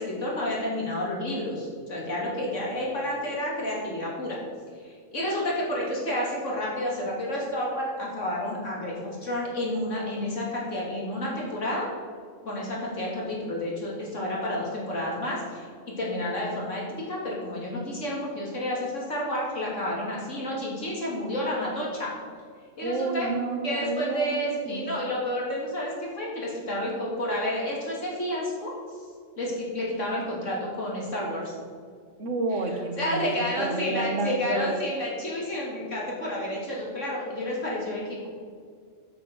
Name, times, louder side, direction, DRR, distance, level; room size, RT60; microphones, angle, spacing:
voice 1, 0.0-4.4 4.8-11.9 12.4-22.1 22.8-23.3 23.6-28.7 29.4-31.6 33.0-38.3, left 1 dB, 85° left, -4 dB, 3.1 m, -30 dB
voice 2, 22.8-24.9 32.2-34.7, right 3 dB, 90° right, 4 dB, 1.6 m, -30 dB
8.3 x 7.9 x 6.1 m, 2.1 s
omnidirectional pair, 1.2 m